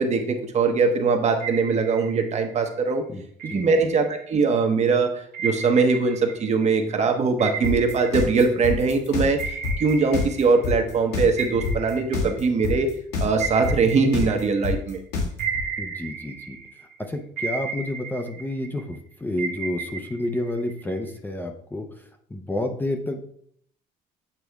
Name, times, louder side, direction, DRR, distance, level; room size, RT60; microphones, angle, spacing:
voice 1, 0.0-3.0 3.4-12.9 13.2-15.0, right 4 dB, 40° right, 5 dB, 1.0 m, -22 dB
sound 1, 1.4-2.7 3.4-4.6 5.3-9.0 9.4-11.0 11.4-14.9 15.4-17.0 17.4-19.0 19.4-21.1, right 6 dB, 70° right, 0.8 m, -35 dB
sound 2, 7.6-15.6, left 4 dB, 85° left, 1.8 m, -26 dB
voice 2, 15.8-16.6 17.0-23.2, left 1 dB, 10° left, 4 dB, 0.6 m, -30 dB
8.2 x 3.4 x 3.5 m, 0.65 s
cardioid pair, 110°, 17 cm